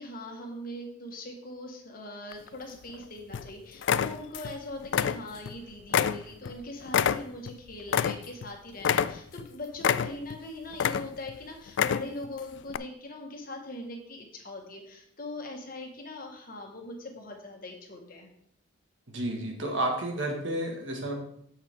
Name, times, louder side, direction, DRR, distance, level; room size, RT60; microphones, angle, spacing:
voice 1, 0.0-18.3, left 1 dB, 45° left, 2 dB, 1.6 m, -41 dB
sound 1, 2.3-3.0 3.3-3.5 3.8-4.6 4.8-5.6 5.9-8.5 8.8-9.4 9.8-10.4 10.7-11.3 11.7-12.3 12.7-12.8, left 8 dB, 60° left, 0.3 m, -27 dB
voice 2, 19.1-21.1, right 1 dB, 70° right, 1 dB, 1.9 m, -31 dB
8.4 x 7.3 x 3.7 m, 0.70 s
head